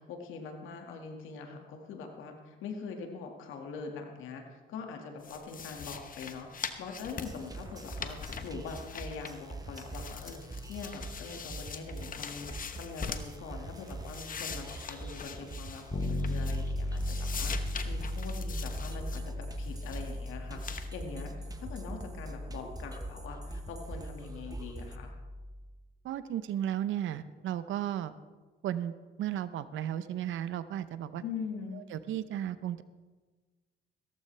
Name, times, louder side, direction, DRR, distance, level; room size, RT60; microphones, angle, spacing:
voice 1, 0.0-25.1 31.2-31.9, left 5 dB, 90° left, 3 dB, 2.0 m, -43 dB
sound 1, 5.2-9.5 9.8-13.4 13.8-16.7 17.0-19.2 19.6-20.1 20.6-20.9, left 6 dB, 45° left, 1.1 m, -42 dB
sound 2, 7.2-25.0, right 2 dB, 20° right, 1.1 m, -45 dB
Bass guitar, 15.9-25.7, left 1 dB, 30° left, 1.3 m, -37 dB
voice 2, 26.0-28.1 28.6-28.9 29.2-31.2 31.7-32.8, right 11 dB, 80° right, 14 dB, 0.7 m, -34 dB
16.5 x 14.5 x 3.3 m, 1.3 s
cardioid pair, 90°, 20 cm